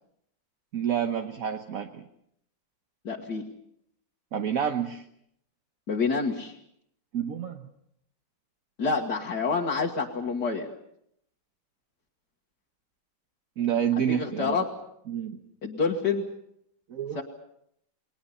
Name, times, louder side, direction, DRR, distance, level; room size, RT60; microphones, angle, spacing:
voice 1, 0.7-2.0 4.3-5.0 7.1-7.6 13.6-14.6 15.1-15.4 16.9-17.2, right 8 dB, 50° right, 6 dB, 1.3 m, -28 dB
voice 2, 3.0-3.4 5.9-6.6 8.8-10.7 13.9-14.7 15.6-16.2 17.2-17.3, left 4 dB, 55° left, -1 dB, 2.3 m, -28 dB
30.0 x 21.0 x 5.6 m, 0.73 s
omnidirectional pair, 2.2 m